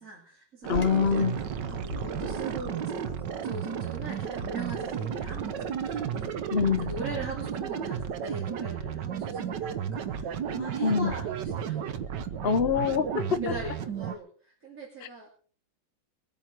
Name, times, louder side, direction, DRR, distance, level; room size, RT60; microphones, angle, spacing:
voice 1, 0.0-12.1 13.4-15.3, right 3 dB, 40° right, -4 dB, 3.6 m, -41 dB
Bird vocalization bird call bird song, 0.6-6.3, left 2 dB, 40° left, 2.3 m, -45 dB
sound 1, 0.6-14.2, right 8 dB, 70° right, 1.5 m, -33 dB
voice 2, 0.7-1.4 6.5-6.9 10.8-11.1 12.4-13.4, left 6 dB, 55° left, 10 dB, 0.6 m, -25 dB
22.5 x 9.2 x 4.6 m, 0.43 s
omnidirectional pair, 2.0 m